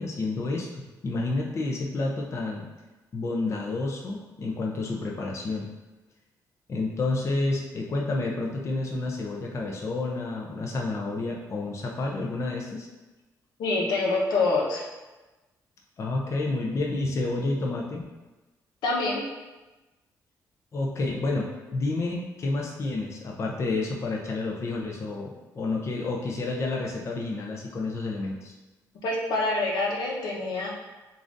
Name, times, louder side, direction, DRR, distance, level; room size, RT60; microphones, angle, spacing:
voice 1, 0.0-2.6 3.1-5.7 6.7-12.9 16.0-18.0 20.7-28.5, left 2 dB, 40° left, -1 dB, 0.6 m, -30 dB
voice 2, 13.6-14.9 18.8-19.2 29.0-30.7, left 3 dB, 85° left, -2 dB, 0.9 m, -26 dB
6.9 x 2.6 x 2.6 m, 1.1 s
cardioid pair, 110°, 7 cm